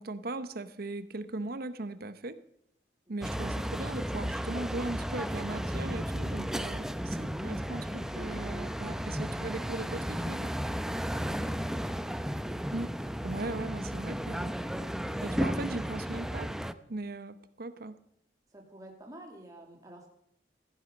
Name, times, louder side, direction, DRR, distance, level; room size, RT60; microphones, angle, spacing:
voice 1, 0.0-2.4 3.1-10.6 12.7-12.9 13.2-14.5 15.2-16.5 16.9-18.0, right 2 dB, 55° right, 12 dB, 0.9 m, -38 dB
voice 2, 3.1-3.5 11.0-11.6 18.5-20.1, right 1 dB, 20° right, 0 dB, 2.3 m, -51 dB
sound 1, 3.2-16.7, equal, 5° right, 0.6 m, -34 dB
16.5 x 14.5 x 5.3 m, 0.72 s
head